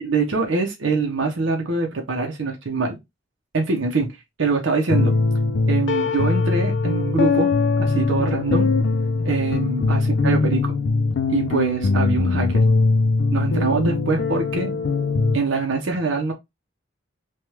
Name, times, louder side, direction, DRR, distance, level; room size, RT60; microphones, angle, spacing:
voice 1, 0.0-3.0 3.5-5.1 5.7-7.5 7.8-8.7 9.2-10.7 11.3-12.6 13.3-14.7 15.3-16.3, right 3 dB, 80° right, 0.7 m, -23 dB
sound 1, 4.9-15.4, left 3 dB, 65° left, 0.4 m, -21 dB
3.3 x 2.3 x 2.8 m
head